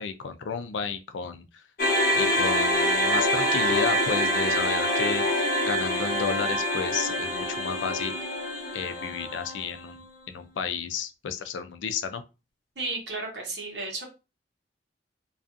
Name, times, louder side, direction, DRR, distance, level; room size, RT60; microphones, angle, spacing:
voice 1, 0.0-1.6 2.1-8.1 8.7-12.2, left 6 dB, 90° left, 0.4 m, -32 dB
sound 1, 1.8-10.1, equal, 45° left, 0.8 m, -26 dB
voice 2, 12.8-14.0, right 3 dB, 70° right, 1.0 m, -33 dB
2.4 x 2.4 x 2.4 m
head